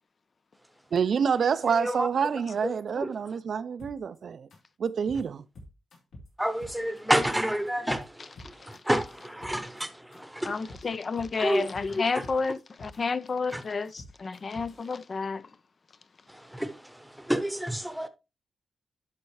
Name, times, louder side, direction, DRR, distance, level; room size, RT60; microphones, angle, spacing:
voice 1, 0.9-4.5 4.8-5.4, right 6 dB, 60° right, 0.4 m, -27 dB
voice 2, 1.6-2.1 2.9-3.1 6.4-10.8 11.4-12.3 13.5-13.6 16.3-18.1, equal, ahead, 0.9 m, -30 dB
sound 1, 3.8-4.2 4.5-4.6 4.9-5.2 5.6-6.3 6.6-7.4 7.7-8.0 8.4-9.8 10.1-10.2 10.5-10.8 11.2-11.9 12.2-13.0 13.3-14.8, left 1 dB, 75° left, 4.5 m, -47 dB
voice 3, 10.4-15.4, left 4 dB, 40° left, 0.4 m, -30 dB
11.5 x 5.4 x 3.2 m
wide cardioid pair, 130°, 0 cm